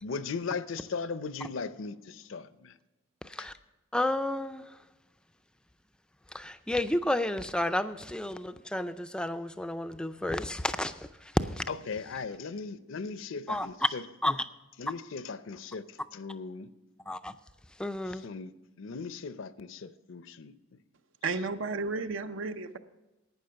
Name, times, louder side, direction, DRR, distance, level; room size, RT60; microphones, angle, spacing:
voice 1, 0.0-2.7 3.4-3.5 11.7-14.0 14.8-16.7 18.1-18.5 18.8-20.8, left 4 dB, 65° left, 14 dB, 0.5 m, -38 dB
voice 2, 3.9-4.7 6.3-11.6 13.5-13.9 14.2-14.5 17.1-17.3 17.8-18.3, left 1 dB, 5° left, 10 dB, 0.4 m, -31 dB
voice 3, 21.2-22.8, right 3 dB, 65° right, 11 dB, 0.6 m, -33 dB
11.5 x 9.2 x 5.7 m, 1.0 s
head